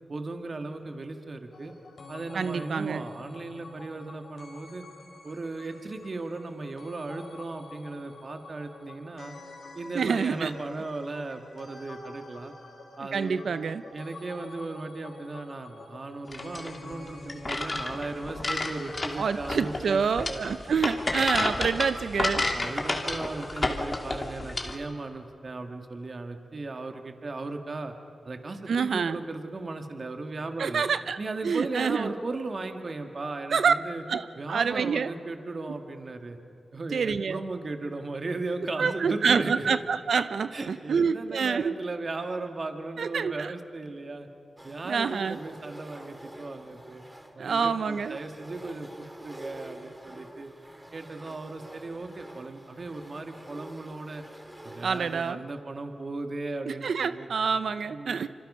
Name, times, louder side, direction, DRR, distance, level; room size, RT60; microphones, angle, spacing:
voice 1, 0.1-1.7 2.1-4.8 5.2-9.3 9.7-12.5 13.0-13.4 13.9-20.0 20.3-20.4 22.5-27.9 28.3-30.8 31.2-34.0 34.4-36.4 36.7-39.6 40.5-44.3 44.6-47.0 47.4-50.5 50.9-54.2 54.6-57.3 57.9-58.3, right 3 dB, 50° right, 5 dB, 1.9 m, -36 dB
sound 1, 1.5-19.8, left 3 dB, 75° left, 4.4 m, -48 dB
voice 2, 2.3-3.0 9.9-10.5 13.1-13.8 19.2-22.4 28.7-29.2 30.6-31.2 31.4-32.1 33.5-33.7 34.1-35.1 36.9-37.4 38.8-41.7 43.0-43.5 44.8-45.4 47.4-48.2 54.8-55.4 56.7-58.3, right 6 dB, 75° right, 13 dB, 0.6 m, -27 dB
sound 2, 16.3-24.8, left 2 dB, 35° left, 2.5 m, -31 dB
sound 3, 44.6-55.3, right 1 dB, 15° right, 2.9 m, -47 dB
26.0 x 25.5 x 5.6 m, 2.5 s
cardioid pair, 55°, 0 cm